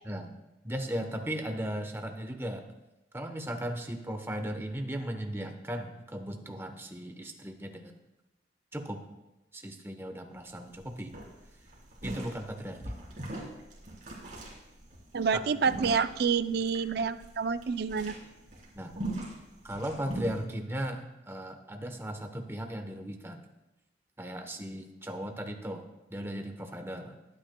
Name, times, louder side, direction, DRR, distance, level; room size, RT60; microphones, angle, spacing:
voice 1, 0.0-0.4 0.6-2.7 3.1-7.9 8.7-9.0 9.5-11.1 12.0-12.8 15.3-15.4 18.7-18.9 19.6-23.4 24.2-25.8 26.1-27.2, equal, 15° right, 5 dB, 0.9 m, -37 dB
sound 1, 10.3-10.4 10.7-10.9 11.1-20.4, right 1 dB, 40° right, 3.2 m, -40 dB
voice 2, 15.1-18.2, right 5 dB, 55° right, 13 dB, 0.4 m, -28 dB
21.5 x 9.2 x 2.2 m, 0.98 s
head